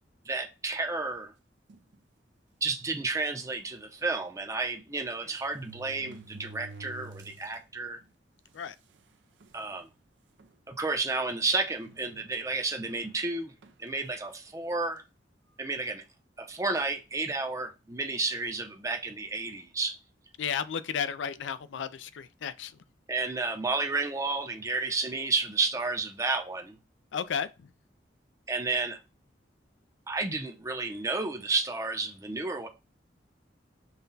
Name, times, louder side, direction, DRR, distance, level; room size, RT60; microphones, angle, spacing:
voice 1, 0.3-1.3 2.6-8.0 9.5-9.9 10.7-13.5 13.8-15.0 15.6-16.0 16.4-20.0 23.1-26.8 28.5-29.0 30.1-32.7, right 3 dB, 15° right, 0.6 m, -31 dB
sound 1, 1.7-2.0 2.7-2.8 3.1-3.2 4.5-4.6 5.3-7.6 8.0-8.1 8.9-9.0 9.4-9.8 10.4-10.5 11.8-12.6 13.6-13.9, right 3 dB, 75° right, 0.5 m, -49 dB
voice 2, 20.4-22.7 27.1-27.7, left 7 dB, 85° left, 0.4 m, -33 dB
5.6 x 2.3 x 3.9 m
head